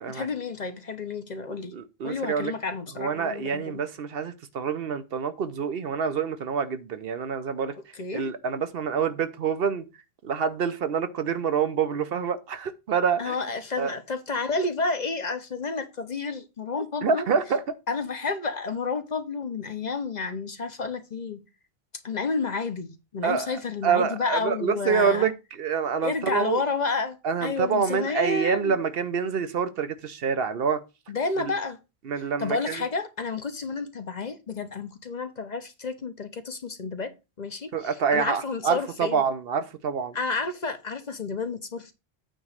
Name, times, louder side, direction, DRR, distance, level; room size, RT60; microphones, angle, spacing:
voice 1, 0.1-1.7 2.0-3.8 7.9-8.3 13.2-17.3 17.9-21.4 22.0-25.3 26.0-28.8 31.1-31.8 32.4-37.1 37.4-39.2 40.1-41.9, left 4 dB, 45° left, 0.9 m, -30 dB
voice 2, 1.7-2.5 3.0-7.7 8.1-9.9 10.2-13.3 13.8-13.9 17.0-17.6 23.2-23.5 23.8-26.6 27.2-30.8 32.1-32.8 37.7-40.2, right 6 dB, 65° right, 0.9 m, -26 dB
9.0 x 3.0 x 6.4 m
omnidirectional pair, 1.1 m